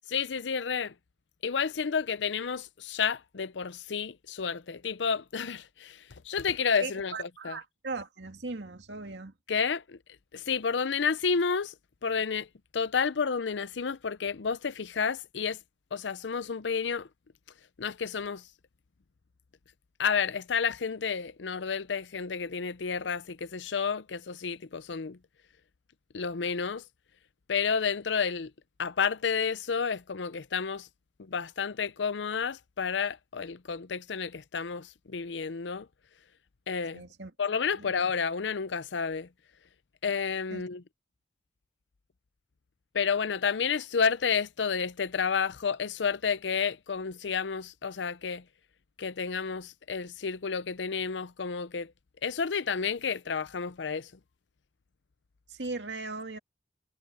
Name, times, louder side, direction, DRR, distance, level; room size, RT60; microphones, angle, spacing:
voice 1, 0.1-0.9 1.4-7.6 9.5-10.0 10.3-11.7 12.0-12.5 12.7-15.6 15.9-17.1 17.8-18.4 20.0-25.2 26.1-26.8 27.5-28.5 28.8-30.9 31.2-35.9 36.7-37.0 37.4-39.3 40.0-40.8 42.9-48.4 49.0-51.9 52.2-54.1, left 6 dB, 90° left, 0.6 m, -30 dB
voice 2, 6.8-9.3 36.9-37.3 37.7-37.9 40.5-40.6 55.5-56.4, right 3 dB, 75° right, 2.3 m, -38 dB
head